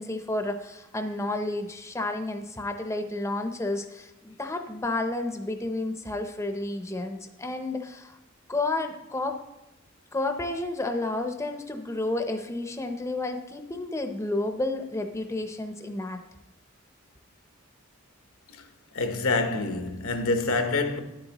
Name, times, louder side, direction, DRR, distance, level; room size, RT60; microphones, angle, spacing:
voice 1, 0.0-8.2 8.5-9.4 10.1-16.2, left 2 dB, 15° left, 0.6 m, -31 dB
voice 2, 18.9-21.0, left 3 dB, 80° left, 0.9 m, -26 dB
9.6 x 8.0 x 2.9 m
head